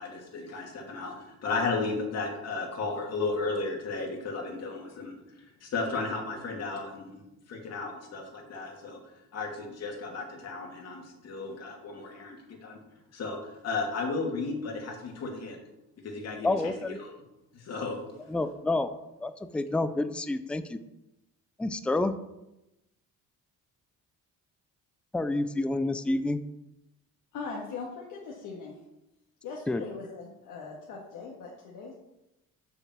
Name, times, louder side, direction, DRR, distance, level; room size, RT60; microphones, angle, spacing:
voice 1, 0.0-9.0 9.3-12.4 12.6-12.8 13.1-15.6 16.0-17.1 17.5-18.0, left 3 dB, 55° left, 2 dB, 2.5 m, -34 dB
voice 2, 16.4-17.0 18.3-18.9 19.2-20.8 21.6-22.1 25.1-26.4 29.7-29.8, left 2 dB, 5° left, 11 dB, 0.4 m, -28 dB
voice 3, 27.3-28.7 29.4-31.9, left 4 dB, 75° left, -3 dB, 2.0 m, -40 dB
7.1 x 6.9 x 7.3 m, 0.92 s
cardioid pair, 155°, 31 cm